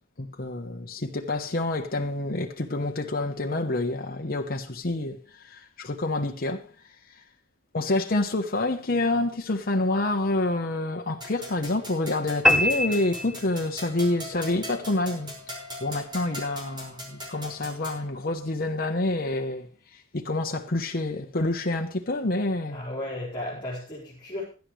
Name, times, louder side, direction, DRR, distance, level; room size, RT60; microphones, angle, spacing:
voice 1, 0.2-5.2 5.4-6.6 7.7-15.3 15.8-19.7 20.1-22.8, left 2 dB, 50° left, 1.0 m, -27 dB
sound 1, 11.2-18.0, equal, 25° right, 5.7 m, -41 dB
sound 2, 12.4-14.0, left 1 dB, ahead, 1.0 m, -24 dB
voice 2, 22.7-24.4, left 1 dB, 25° left, 4.9 m, -34 dB
16.5 x 11.5 x 3.3 m
head